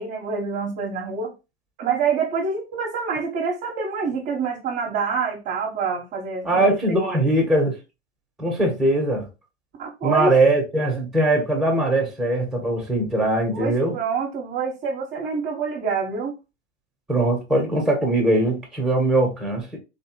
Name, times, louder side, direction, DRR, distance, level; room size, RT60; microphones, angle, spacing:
voice 1, 0.0-1.3 1.8-7.2 9.8-10.4 13.5-16.3, right 5 dB, 30° right, 1.1 m, -26 dB
voice 2, 6.4-7.7 8.4-9.3 10.0-14.0 17.1-19.8, right 1 dB, ahead, 1.2 m, -21 dB
3.7 x 3.2 x 3.0 m
figure-of-eight pair, 95°, 36 cm